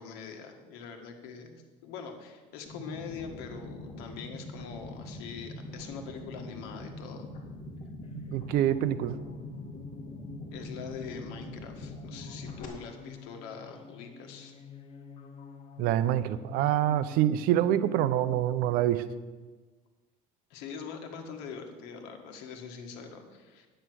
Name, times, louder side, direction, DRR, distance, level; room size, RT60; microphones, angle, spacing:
voice 1, 0.0-7.3 10.5-14.6 20.5-23.7, left 6 dB, 80° left, 4 dB, 1.8 m, -43 dB
sound 1, 2.7-12.7, left 1 dB, 55° left, 2.5 m, -43 dB
sound 2, 8.0-18.9, left 5 dB, 35° left, 0.9 m, -48 dB
voice 2, 8.1-9.2 15.8-19.0, right 12 dB, 65° right, 14 dB, 0.7 m, -26 dB
10.0 x 9.0 x 6.3 m, 1.3 s
cardioid pair, 150°, 17 cm